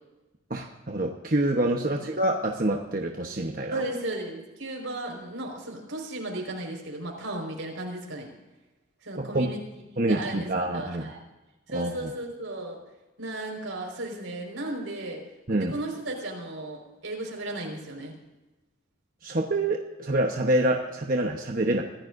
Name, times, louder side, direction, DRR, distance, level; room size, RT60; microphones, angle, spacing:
voice 1, 0.5-3.8 9.2-9.5 10.0-11.1 11.7-12.1 15.5-15.7 19.2-21.8, right 1 dB, 45° right, 2 dB, 1.1 m, -26 dB
voice 2, 3.7-8.3 9.0-11.2 11.7-12.8 13.2-18.1, right 1 dB, 90° right, 1 dB, 5.0 m, -35 dB
24.5 x 14.5 x 2.6 m, 1.1 s
head